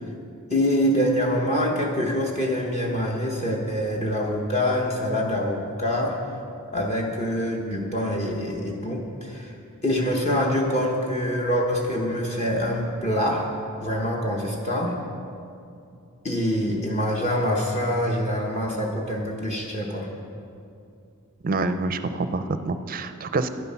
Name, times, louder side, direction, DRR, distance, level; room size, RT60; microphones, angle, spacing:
voice 1, 0.5-6.2 6.7-9.5 9.8-13.5 13.8-15.0 16.2-20.1, equal, 30° left, -2 dB, 1.1 m, -25 dB
voice 2, 21.4-23.5, right 3 dB, 40° right, 10 dB, 0.5 m, -26 dB
11.0 x 10.5 x 5.7 m, 2.5 s
head